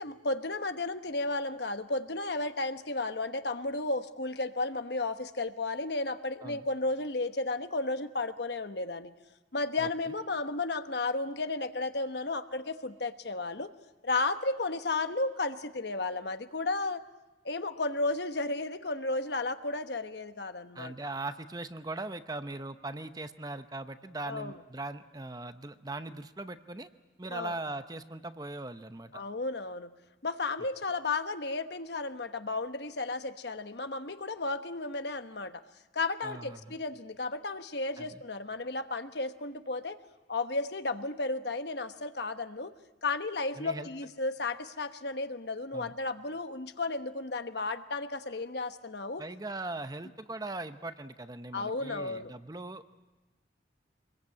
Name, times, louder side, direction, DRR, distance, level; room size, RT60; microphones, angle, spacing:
voice 1, 0.0-9.1 9.5-13.7 14.0-17.0 17.4-20.9 24.2-24.5 27.3-27.5 29.1-29.9 30.2-35.6 35.9-40.0 40.3-42.7 43.0-49.2 51.5-52.3, left 3 dB, 60° left, 9 dB, 1.1 m, -33 dB
voice 2, 20.7-26.9 27.2-29.2 36.2-36.8 38.0-38.2 43.6-43.9 45.7-45.9 49.2-52.9, right 2 dB, 20° right, 10 dB, 0.8 m, -40 dB
25.5 x 21.5 x 8.5 m, 1.1 s
head